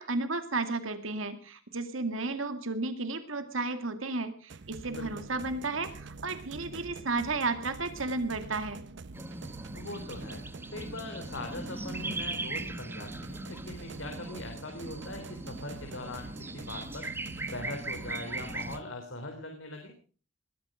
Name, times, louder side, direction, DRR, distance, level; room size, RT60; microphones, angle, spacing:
voice 1, 0.0-8.8, right 3 dB, 85° right, 9 dB, 2.2 m, -33 dB
sound 1, 4.5-18.8, right 3 dB, 60° right, 0.7 m, -46 dB
voice 2, 4.8-5.3 9.7-10.4 10.7-17.1 17.4-19.9, left 2 dB, 75° left, 3 dB, 3.6 m, -41 dB
sound 2, 9.1-18.8, right 2 dB, 10° right, 1.2 m, -40 dB
20.5 x 13.5 x 5.1 m, 0.40 s
head